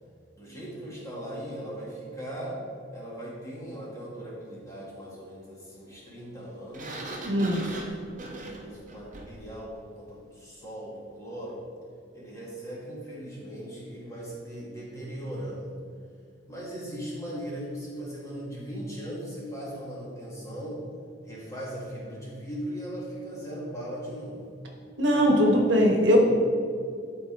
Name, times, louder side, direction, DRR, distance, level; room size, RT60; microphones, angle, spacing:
voice 1, 0.4-2.6 2.9-7.0 7.7-11.6 12.1-15.7 16.5-20.8 21.2-24.4 25.1-25.5 26.1-26.2, equal, 15° left, -6 dB, 1.9 m, -39 dB
Sliding door, 6.7-9.5, right 1 dB, 45° right, 1.0 m, -40 dB
voice 2, 7.2-7.6 25.0-26.2, equal, 85° right, 0 dB, 1.2 m, -20 dB
12.0 x 4.2 x 3.3 m, 2.2 s
head